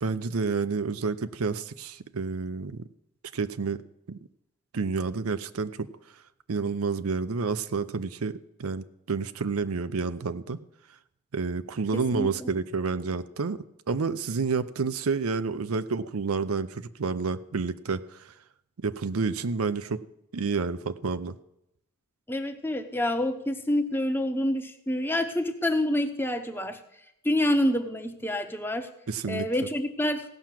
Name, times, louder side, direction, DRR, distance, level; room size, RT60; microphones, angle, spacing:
voice 1, 0.0-2.9 3.3-3.8 4.1-4.2 4.7-5.9 6.5-10.6 11.3-18.0 18.8-20.0 20.3-21.4 29.1-29.5, right 4 dB, 90° right, 12 dB, 0.6 m, -29 dB
voice 2, 11.9-12.5 22.3-26.8 27.2-28.9 29.3-30.2, left 1 dB, 10° left, 6 dB, 0.8 m, -27 dB
16.0 x 5.9 x 7.5 m, 0.82 s
head